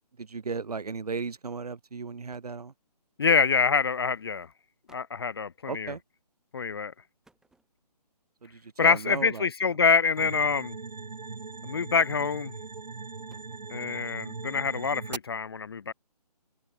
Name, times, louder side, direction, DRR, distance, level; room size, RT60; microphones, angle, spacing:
voice 1, 0.2-2.7 5.6-6.0 8.4-9.8, right 4 dB, 65° right, 1.6 m, -36 dB
sound 1, 2.3-2.7 3.7-3.9 4.5-4.6 4.9-5.2 7.2-8.1 9.0-9.2 9.7-10.4 11.6-12.1 12.9-14.0, right 2 dB, 5° right, 6.4 m, -65 dB
voice 2, 3.2-4.5 4.9-5.9 6.5-6.9 8.8-10.7 11.6-12.5 13.7-15.9, left 5 dB, 35° left, 0.4 m, -26 dB
sound 2, 10.2-15.2, right 4 dB, 80° right, 0.9 m, -40 dB
figure-of-eight pair, 150°, 21 cm